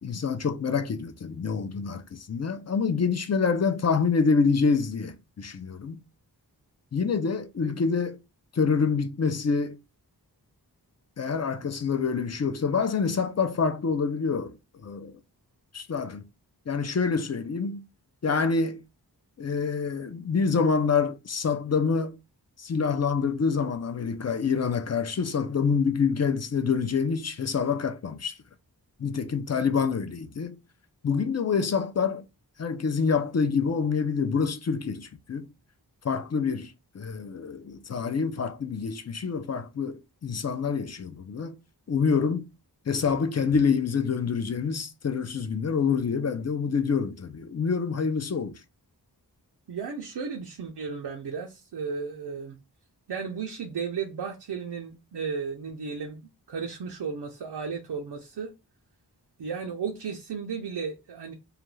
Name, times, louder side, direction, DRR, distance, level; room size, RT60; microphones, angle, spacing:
voice 1, 0.0-6.0 6.9-8.2 8.5-9.8 11.2-14.6 14.8-15.2 15.7-16.2 16.7-17.8 18.2-18.8 19.4-22.2 22.6-28.4 29.0-30.6 31.0-32.3 32.6-35.5 36.0-41.6 41.9-42.5 42.9-48.6, left 5 dB, 40° left, 0.4 m, -26 dB
voice 2, 49.7-52.6 53.1-58.5 59.4-61.3, right 5 dB, 80° right, 0.6 m, -34 dB
2.4 x 2.2 x 3.1 m
wide cardioid pair, 60°, 40 cm